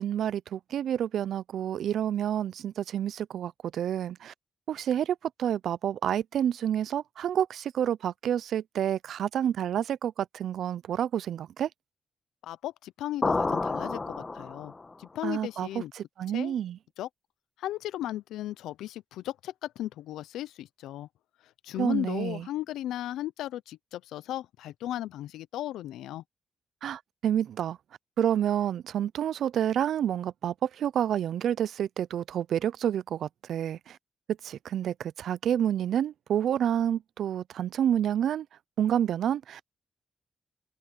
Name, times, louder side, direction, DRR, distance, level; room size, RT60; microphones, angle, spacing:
voice 1, 0.0-4.3 4.7-11.7 15.2-15.7 15.9-16.8 21.8-22.5 26.8-27.8 28.2-34.0 34.4-38.5 38.8-39.7, right 10 dB, 70° right, 0.7 m, -29 dB
voice 2, 12.4-14.7 15.0-15.9 16.3-16.6 17.0-17.1 17.6-21.1 21.6-26.2, left 13 dB, 80° left, 0.8 m, -36 dB
sound 1, 13.2-14.9, left 3 dB, 35° left, 1.5 m, -29 dB
open air
hypercardioid pair, 40°, 0 cm